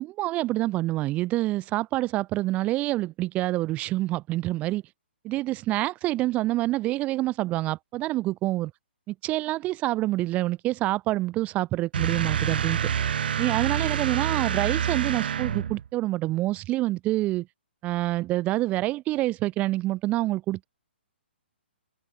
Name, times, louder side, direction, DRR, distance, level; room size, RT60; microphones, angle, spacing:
voice 1, 0.0-4.8 5.2-8.7 9.1-12.8 13.4-17.5 17.8-20.7, right 17 dB, 20° right, 3.5 m, -27 dB
sound 1, 11.9-15.9, right 8 dB, 55° right, 1.8 m, -27 dB
open air
figure-of-eight pair, 130°, 6 cm